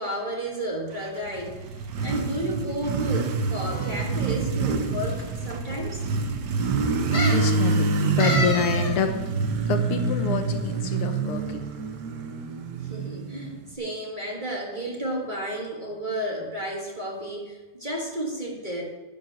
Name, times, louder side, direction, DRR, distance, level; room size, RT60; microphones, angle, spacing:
voice 1, 0.0-1.7 2.0-6.0 12.8-18.8, right 1 dB, 25° right, -2 dB, 1.6 m, -32 dB
Motorcycle, 1.1-13.7, right 4 dB, 60° right, 1.3 m, -26 dB
sound 1, 3.7-4.3 5.1-5.2 5.5-5.6 7.1-7.5 8.2-9.0 9.3-9.4, left 1 dB, 25° left, 1.5 m, -29 dB
voice 2, 7.1-9.1 9.7-11.6, left 6 dB, 90° left, 6 dB, 1.9 m, -27 dB
10.5 x 5.4 x 7.7 m, 1.2 s
omnidirectional pair, 2.4 m